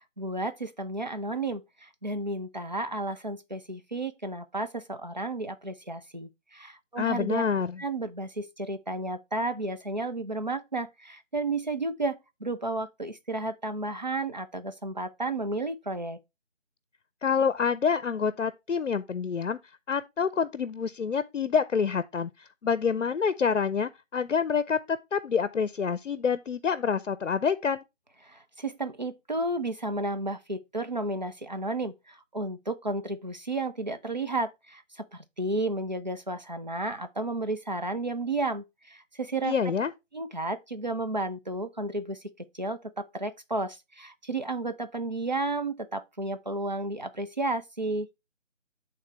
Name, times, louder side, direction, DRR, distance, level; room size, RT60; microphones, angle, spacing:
voice 1, 0.2-7.4 7.8-16.2 28.2-39.5 40.1-48.1, right 2 dB, 35° right, 0.5 m, -32 dB
voice 2, 7.0-7.8 17.2-19.6 19.9-22.3 22.6-27.8 39.4-39.9, left 6 dB, 70° left, 0.6 m, -27 dB
8.6 x 3.7 x 4.3 m
figure-of-eight pair, 165°, 37 cm